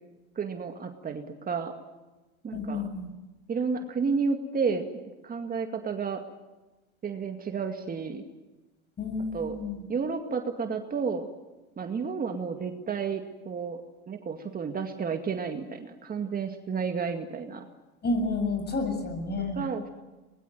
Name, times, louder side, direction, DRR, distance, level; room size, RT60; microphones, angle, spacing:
voice 1, 0.4-1.7 2.4-2.9 3.5-4.9 5.2-6.2 7.0-8.2 9.3-9.6 9.9-11.3 11.8-13.8 14.1-17.6 19.4-19.9, right 5 dB, 30° right, 5 dB, 2.2 m, -31 dB
voice 2, 2.5-3.1 9.0-9.8 18.0-19.6, left 3 dB, 30° left, 7 dB, 7.1 m, -30 dB
22.5 x 21.5 x 9.4 m, 1.1 s
supercardioid pair, 105°, 32 cm